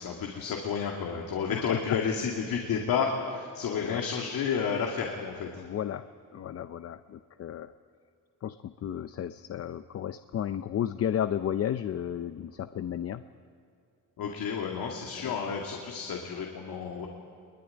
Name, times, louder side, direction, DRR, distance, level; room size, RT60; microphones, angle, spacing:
voice 1, 0.0-5.5 14.2-17.1, left 6 dB, 85° left, 1 dB, 2.5 m, -31 dB
voice 2, 1.5-2.0 3.7-4.0 5.6-6.0 6.3-7.7 8.4-13.2 15.2-15.3, left 10 dB, 45° left, 11 dB, 0.6 m, -33 dB
22.5 x 21.5 x 10.0 m, 2.5 s
wide cardioid pair, 170°, 34 cm